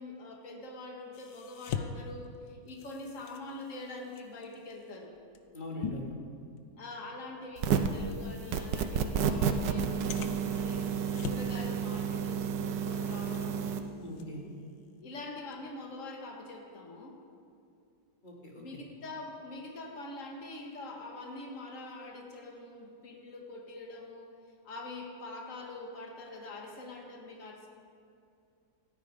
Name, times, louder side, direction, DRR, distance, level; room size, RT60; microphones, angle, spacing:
voice 1, 0.0-5.1 6.8-11.0 11.2-13.8 15.0-17.2 18.6-24.3 24.6-27.7, left 2 dB, 45° left, 1 dB, 2.1 m, -44 dB
sound 1, 1.1-6.9 7.3-7.5 8.1-8.2 9.1-9.2 10.1-11.6 11.9-12.4 12.7-14.9 15.3-15.5, left 7 dB, 80° left, 1.5 m, -43 dB
voice 2, 5.5-6.1 14.0-14.4 18.2-18.6, left 1 dB, 25° left, -2 dB, 2.7 m, -41 dB
sound 2, 7.6-8.0 8.5-13.8, right 7 dB, 80° right, 1.6 m, -31 dB
27.0 x 9.8 x 5.0 m, 2.4 s
omnidirectional pair, 1.9 m